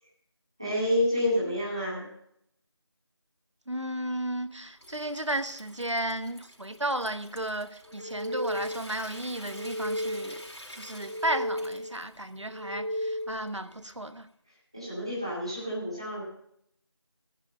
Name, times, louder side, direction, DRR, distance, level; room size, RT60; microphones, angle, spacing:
voice 1, 0.6-2.1 14.7-16.2, left 1 dB, 10° right, 2.5 m, -28 dB
voice 2, 3.7-10.4 10.7-14.3, right 1 dB, 80° right, 1.2 m, -34 dB
Water tap faucet / Sink (filling or washing) / Trickle dribble, 4.3-14.3, equal, 70° left, 4.5 m, -50 dB
sound 1, 7.9-9.0 9.4-10.5 10.9-12.0 12.4-13.6, equal, 50° right, 0.7 m, -34 dB
16.0 x 10.5 x 5.5 m
figure-of-eight pair, 180°, 15 cm